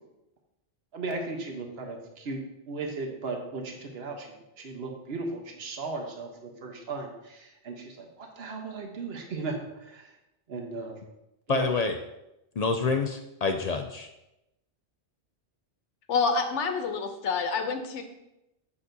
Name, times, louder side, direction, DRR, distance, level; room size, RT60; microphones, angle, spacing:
voice 1, 0.9-2.4 2.7-4.3 4.6-10.1 10.5-11.0 11.5-11.7, right 3 dB, 60° right, 2 dB, 1.2 m, -36 dB
voice 2, 11.5-12.0 12.6-14.1, left 4 dB, 65° left, 6 dB, 0.4 m, -27 dB
voice 3, 16.1-18.0, left 5 dB, 90° left, 6 dB, 1.1 m, -27 dB
8.3 x 6.0 x 2.7 m, 0.90 s
omnidirectional pair, 1.2 m